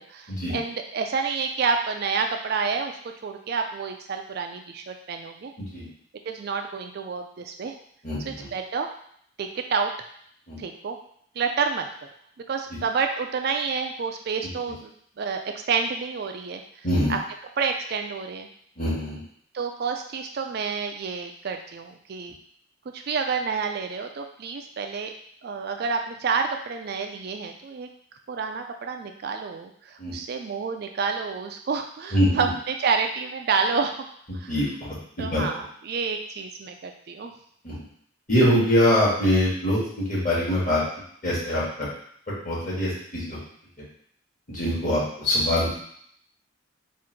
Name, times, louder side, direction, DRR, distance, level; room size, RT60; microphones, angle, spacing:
voice 1, 0.0-2.9 3.2-5.5 6.3-7.7 8.2-8.9 9.4-9.9 10.6-11.0 11.4-11.9 12.5-14.9 15.2-16.6 17.1-17.2 17.6-18.5 19.5-22.3 22.9-25.1 25.4-27.9 28.3-34.1 34.3-34.6 35.2-37.3, right 5 dB, 50° right, 5 dB, 0.3 m, -29 dB
voice 2, 8.0-8.5 10.5-10.6 16.8-17.1 18.8-19.2 30.0-30.1 32.1-32.5 34.5-35.4 37.6-37.7 38.3-40.8 41.2-41.9 42.3-43.4 44.5-45.7, left 1 dB, 40° left, -7 dB, 1.6 m, -23 dB
3.7 x 2.5 x 4.5 m, 0.65 s
head